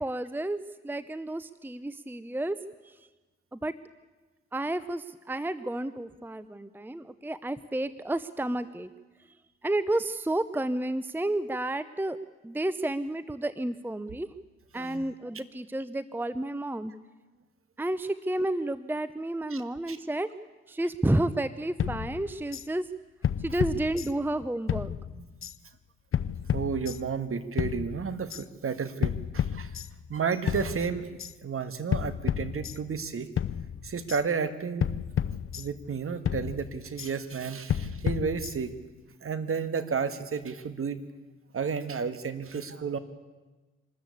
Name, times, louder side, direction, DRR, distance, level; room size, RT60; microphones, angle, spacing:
voice 1, 0.0-2.6 2.8-2.9 3.5-3.7 4.5-8.9 9.6-12.2 12.4-14.3 14.7-16.9 17.8-20.3 20.7-22.9 23.4-24.9, right 1 dB, 5° right, 14 dB, 0.8 m, -31 dB
sound 1, 21.8-22.7 23.2-24.4 24.7-25.6 26.1-27.2 27.6-28.4 29.0-30.2 30.5-31.3 31.9-33.1 33.4-34.2 34.8-36.0 36.3-37.1 37.7-38.9, left 9 dB, 45° left, 0.7 m, -31 dB
voice 2, 26.5-29.8 30.1-33.3 33.8-34.9 35.2-38.8 39.2-41.0 41.5-43.0, right 6 dB, 45° right, 11 dB, 1.7 m, -32 dB
25.0 x 13.5 x 8.5 m, 1.2 s
hypercardioid pair, 45°, 30 cm